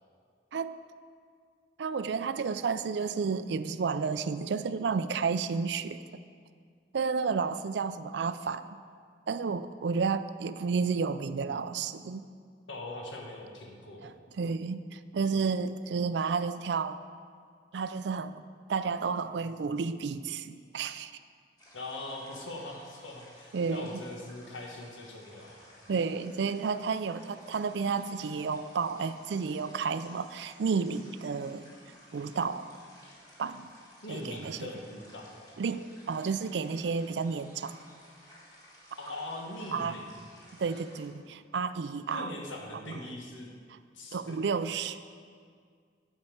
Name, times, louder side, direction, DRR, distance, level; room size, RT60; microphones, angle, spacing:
voice 1, 1.8-6.0 6.9-8.7 9.3-12.2 14.0-17.0 17.7-18.4 18.7-21.1 23.5-23.9 25.9-31.6 32.1-32.8 33.4-33.7 34.1-34.7 35.6-37.8 39.7-40.0 40.6-42.3 42.9-43.0 44.1-45.1, right 5 dB, 65° right, 13 dB, 0.4 m, -31 dB
voice 2, 12.7-14.2 21.7-25.7 34.0-35.3 39.0-40.1 40.7-40.8 42.1-43.5 43.9-44.4, left 1 dB, 85° left, 0 dB, 1.6 m, -41 dB
sound 1, 21.6-41.1, equal, 20° left, 2.3 m, -56 dB
8.7 x 5.6 x 7.7 m, 2.1 s
head